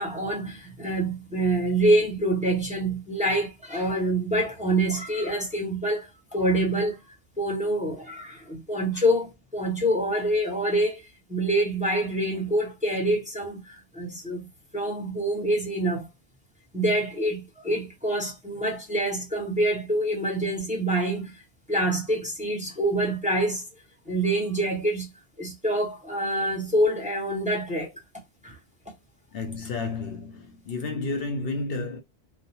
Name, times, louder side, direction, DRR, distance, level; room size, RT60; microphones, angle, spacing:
voice 1, 0.0-7.0 7.4-14.5 14.7-16.1 16.7-21.4 21.7-23.6 24.1-25.1 25.4-27.9 28.4-28.6, right 1 dB, 10° right, 0.8 m, -26 dB
voice 2, 29.3-32.0, left 3 dB, 70° left, 0.8 m, -31 dB
3.1 x 2.1 x 2.6 m
omnidirectional pair, 1.1 m